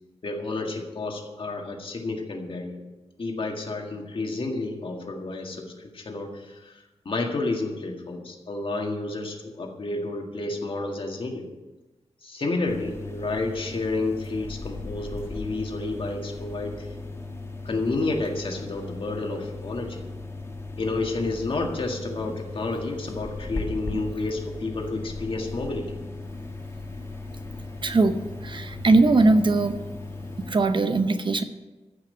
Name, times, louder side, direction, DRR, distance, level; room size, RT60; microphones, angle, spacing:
voice 1, 0.2-2.8 3.2-11.5 12.2-16.9 17.6-20.0 20.8-26.0, left 2 dB, 50° left, 2 dB, 1.9 m, -30 dB
sound 1, 12.7-30.5, left 2 dB, 25° left, 1.7 m, -37 dB
voice 2, 27.8-29.8 30.5-31.4, right 3 dB, 45° right, 9 dB, 0.8 m, -20 dB
15.0 x 5.9 x 8.0 m, 1.2 s
wide cardioid pair, 155°, 12 cm